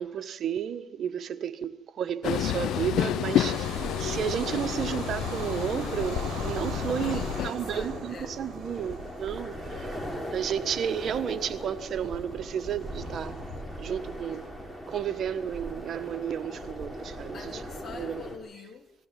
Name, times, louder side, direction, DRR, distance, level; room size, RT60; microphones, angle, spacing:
voice 1, 0.0-9.9 10.3-13.4 13.8-14.5 14.9-17.4 18.0-18.2, right 8 dB, 65° right, 1.3 m, -32 dB
Train, 2.2-7.5, left 11 dB, 80° left, 0.7 m, -30 dB
Bird vocalization bird call bird song / Train, 2.3-13.5, right 10 dB, 80° right, 1.4 m, -44 dB
sound 1, 3.7-18.4, equal, 5° left, 4.4 m, -39 dB
voice 2, 7.0-8.4 17.3-18.9, left 5 dB, 50° left, 3.7 m, -45 dB
21.0 x 15.5 x 9.3 m
cardioid pair, 90°, 0 cm